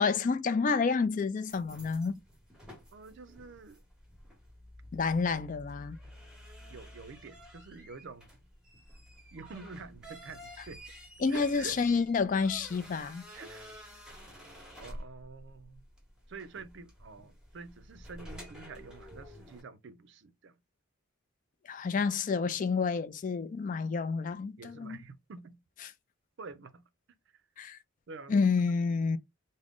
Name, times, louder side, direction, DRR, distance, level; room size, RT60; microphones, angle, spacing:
voice 1, 0.0-2.2 4.9-6.0 11.2-13.3 21.6-25.0 27.6-27.8 28.3-29.2, left 5 dB, 40° left, 0.3 m, -29 dB
sound 1, 1.5-19.6, equal, 5° right, 0.8 m, -51 dB
voice 2, 2.9-3.8 6.7-8.3 9.3-10.8 11.3-11.8 13.3-14.0 14.8-15.8 16.3-20.6 24.6-25.6 26.4-26.8 28.1-28.5, right 4 dB, 60° right, 0.5 m, -47 dB
3.6 x 2.1 x 3.5 m
head